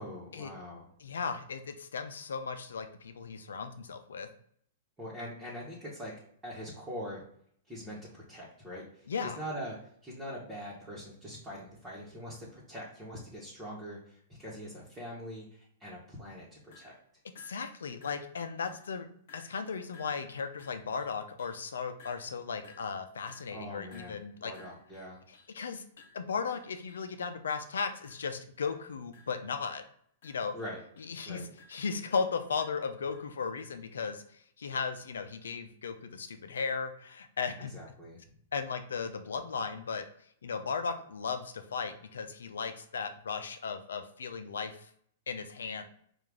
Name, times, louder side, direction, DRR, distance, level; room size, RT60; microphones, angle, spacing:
voice 1, 0.0-0.9 5.0-6.1 6.4-7.2 7.7-9.8 10.0-16.9 23.5-25.2 30.5-30.8 31.2-31.5 37.7-38.2, equal, 10° right, -8 dB, 1.3 m, -43 dB
voice 2, 1.0-4.3 9.1-9.4 17.4-19.1 19.3-24.5 25.5-25.8 26.1-29.8 30.2-30.5 31.1-31.4 31.7-34.2 34.6-37.7 38.5-40.0 40.4-44.9 45.3-45.8, left 5 dB, 85° left, 9 dB, 0.5 m, -36 dB
sound 1, 16.7-17.0 17.4-17.7 18.0-18.4 18.6-19.0 19.3-19.7 19.9-21.7 22.0-25.6 26.0-27.1 27.5-27.8 28.0-28.3 28.6-28.9 29.1-31.2 31.6-34.3, left 4 dB, 60° left, 0.8 m, -59 dB
4.6 x 2.5 x 3.5 m, 0.65 s
hypercardioid pair, 120°, 0 cm